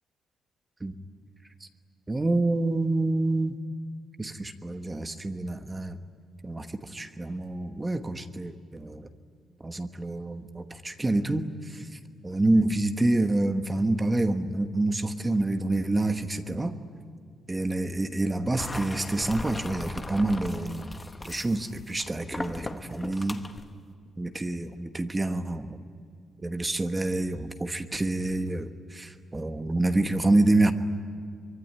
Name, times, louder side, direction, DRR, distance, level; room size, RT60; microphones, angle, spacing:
voice 1, 2.1-3.6 4.2-6.0 6.4-9.1 9.6-11.9 12.2-16.8 17.5-20.9 21.2-23.4 24.2-25.8 26.4-30.7, right 2 dB, 15° right, 7 dB, 1.2 m, -27 dB
sound 1, 18.6-23.7, left 2 dB, 15° left, 1.0 m, -38 dB
24.5 x 23.0 x 9.8 m, 2.2 s
cardioid pair, 170°, 0 cm